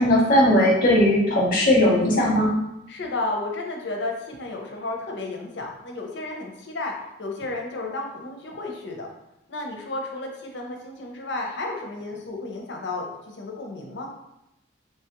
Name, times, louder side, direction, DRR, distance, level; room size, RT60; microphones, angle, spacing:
voice 1, 0.0-2.5, left 1 dB, 45° left, -4 dB, 0.9 m, -18 dB
voice 2, 2.9-6.9 7.2-9.1 9.5-14.1, left 2 dB, 65° left, 1 dB, 0.6 m, -32 dB
3.1 x 2.3 x 2.9 m, 0.86 s
head